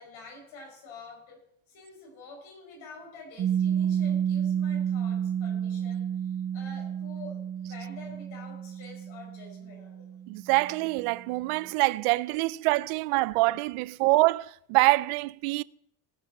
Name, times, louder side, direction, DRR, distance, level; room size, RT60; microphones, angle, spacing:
voice 1, 0.0-10.2, left 3 dB, 70° left, 5.7 m, -48 dB
Piano, 3.4-10.7, right 9 dB, 35° right, 1.3 m, -30 dB
voice 2, 10.3-15.6, right 22 dB, 85° right, 0.5 m, -25 dB
18.0 x 6.2 x 5.4 m
cardioid pair, 140°, 49 cm